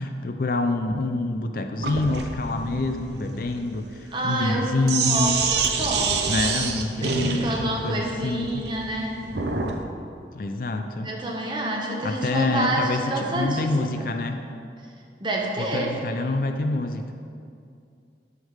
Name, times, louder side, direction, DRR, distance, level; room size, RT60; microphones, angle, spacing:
voice 1, 0.0-5.4 6.3-8.6 10.3-11.1 12.0-14.4 15.6-17.1, left 2 dB, 50° left, 6 dB, 0.4 m, -26 dB
Sink (filling or washing), 1.8-9.8, right 5 dB, 70° right, 0.7 m, -27 dB
voice 2, 4.1-4.7 5.0-6.4 7.0-9.2 11.0-13.9 15.2-15.9, right 1 dB, 25° right, -1 dB, 0.9 m, -28 dB
9.4 x 3.6 x 6.4 m, 2.4 s
head